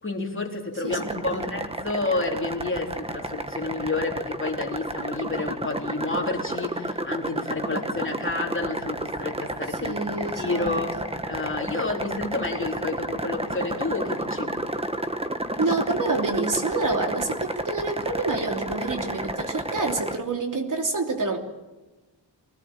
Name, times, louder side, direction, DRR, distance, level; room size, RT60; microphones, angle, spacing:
voice 1, 0.0-10.9 11.3-14.6, left 3 dB, 25° left, 1 dB, 3.7 m, -30 dB
voice 2, 0.8-1.4 9.8-10.8 15.6-21.4, right 3 dB, 45° right, 3 dB, 3.1 m, -27 dB
sound 1, 0.9-20.2, right 1 dB, 15° right, 1.5 m, -31 dB
24.5 x 18.5 x 9.0 m, 1.1 s
wide cardioid pair, 145°, 44 cm